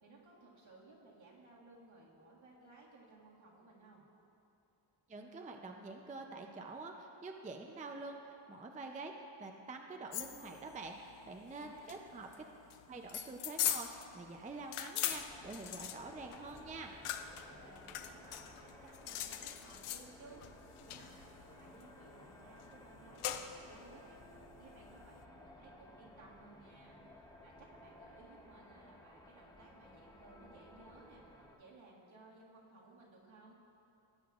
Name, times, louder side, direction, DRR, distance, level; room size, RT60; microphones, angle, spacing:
voice 1, 0.0-4.0 11.4-11.9 17.2-24.2 24.6-27.0 27.4-33.5, right 3 dB, 70° right, -5 dB, 1.9 m, -59 dB
voice 2, 5.1-9.1 9.4-12.5 12.9-16.9, right 3 dB, 15° right, 3 dB, 0.4 m, -47 dB
sound 1, 10.1-25.2, left 10 dB, 85° left, 0.6 m, -42 dB
sound 2, 15.1-31.6, left 1 dB, 10° left, 0.7 m, -57 dB
17.5 x 7.8 x 2.4 m, 2.8 s
wide cardioid pair, 140°, 50 cm